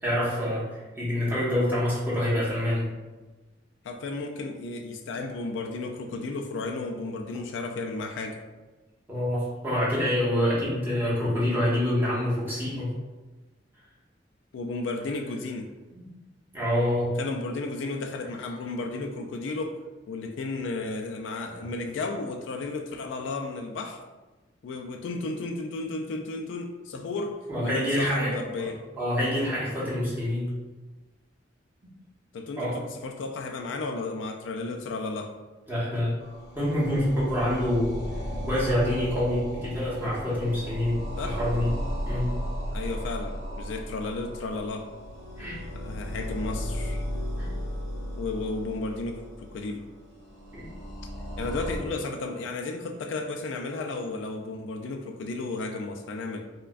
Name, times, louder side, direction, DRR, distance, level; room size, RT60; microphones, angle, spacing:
voice 1, 0.0-2.9 9.1-12.9 15.9-16.1 16.5-17.1 27.5-28.7 29.0-30.5 32.6-32.8 35.7-36.2 36.5-37.9 38.5-41.7 42.0-42.3 45.4-45.6 47.4-47.5 50.5-50.7, left 1 dB, 10° right, -9 dB, 1.1 m, -26 dB
voice 2, 3.8-8.4 14.5-15.7 17.2-19.8 20.1-24.0 24.6-28.8 32.3-35.3 41.2-41.4 42.7-44.9 45.7-47.1 48.2-49.8 51.4-56.4, left 3 dB, 90° left, 3 dB, 0.3 m, -33 dB
sound 1, 36.2-51.8, equal, 40° right, 1.3 m, -35 dB
4.5 x 2.2 x 2.4 m, 1.2 s
head